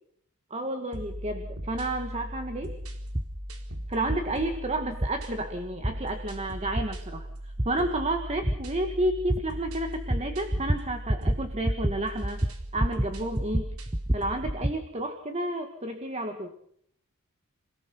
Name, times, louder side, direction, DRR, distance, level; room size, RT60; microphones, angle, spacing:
voice 1, 0.5-2.7 3.9-7.3 7.7-12.4 12.7-13.8 14.1-16.5, right 1 dB, 30° right, 6 dB, 2.0 m, -31 dB
sound 1, 0.9-14.6, equal, 80° right, 4.0 m, -38 dB
sound 2, 3.2-3.3 4.1-4.2 5.0-5.1 5.8-5.9 6.8-6.9 7.6-7.7 8.5-8.6 9.3-9.4 10.1-10.2 10.5-10.8 11.1-11.4 11.6-12.0 12.2-13.1 13.4-14.8, right 1 dB, 15° right, 0.8 m, -26 dB
28.5 x 18.0 x 5.8 m, 0.68 s
head